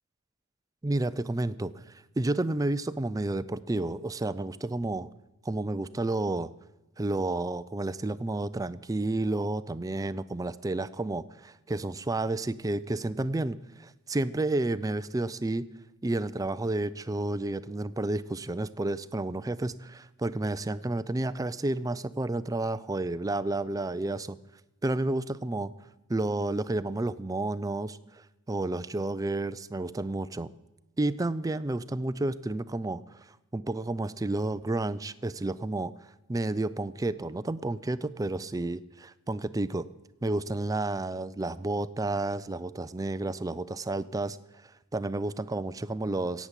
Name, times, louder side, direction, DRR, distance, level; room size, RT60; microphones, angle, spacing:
voice 1, 0.8-1.8 2.2-5.1 5.5-6.5 7.0-15.7 16.0-24.4 24.8-25.7 26.1-28.0 28.5-30.5 31.0-33.0 33.5-35.9 36.3-39.9 40.2-44.4 44.9-46.5, right 2 dB, 15° right, 15 dB, 0.4 m, -31 dB
17.0 x 7.2 x 8.1 m, 0.99 s
head